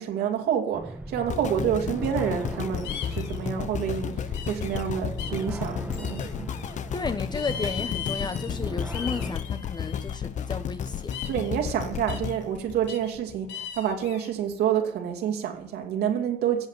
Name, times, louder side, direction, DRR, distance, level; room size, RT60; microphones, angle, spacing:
voice 1, 0.0-6.5 11.3-16.7, right 9 dB, 75° right, 2.7 m, -28 dB
sound 1, 0.7-9.4, right 2 dB, 10° right, 1.4 m, -39 dB
sound 2, 1.3-13.5 14.0-14.1, left 8 dB, 45° left, 0.9 m, -33 dB
sound 3, 2.8-3.4 4.3-4.8 5.2-5.5 6.0-6.7 7.3-8.6 8.9-10.2 11.1-11.5 12.1-12.4 12.9-13.1 13.5-14.3, left 8 dB, 80° left, 2.2 m, -38 dB
voice 2, 6.9-11.2, left 4 dB, 25° left, 1.0 m, -33 dB
16.0 x 7.9 x 9.4 m
cardioid pair, 110°, 17 cm